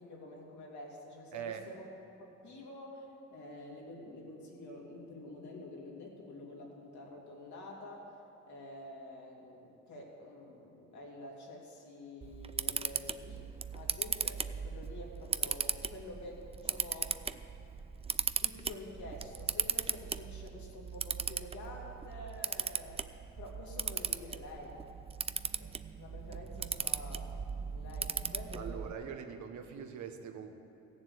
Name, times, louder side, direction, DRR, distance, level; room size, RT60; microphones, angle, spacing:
voice 1, 0.0-1.8 2.2-8.1 8.4-17.2 18.4-23.0 23.4-24.8 25.6-27.3 27.6-29.1, left 1 dB, 70° left, -2 dB, 2.9 m, -48 dB
voice 2, 1.3-1.7 28.5-30.5, right 8 dB, 70° right, 6 dB, 1.2 m, -42 dB
Camera, 12.2-28.9, right 5 dB, 20° right, 0.4 m, -38 dB
15.5 x 7.3 x 8.0 m, 2.8 s
cardioid pair, 90°, 30 cm